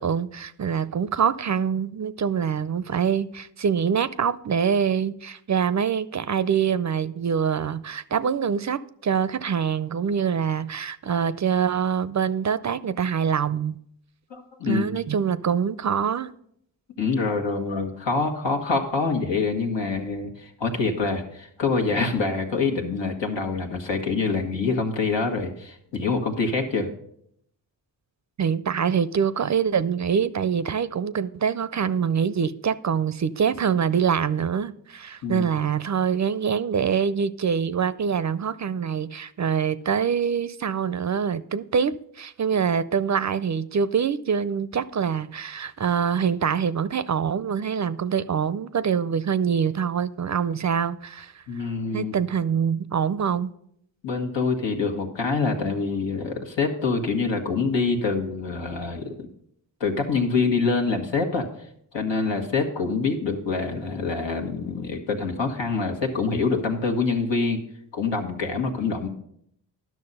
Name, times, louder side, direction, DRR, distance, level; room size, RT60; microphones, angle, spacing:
voice 1, 0.0-13.8 14.6-16.3 28.4-51.4 51.9-53.5, right 7 dB, 40° right, 0.5 m, -25 dB
voice 2, 14.3-14.9 17.0-26.9 35.2-35.5 51.5-52.1 54.0-59.3 59.8-61.5 61.9-67.6 67.9-69.1, left 4 dB, 80° left, 1.5 m, -25 dB
10.5 x 6.3 x 5.4 m
cardioid pair, 50°, 43 cm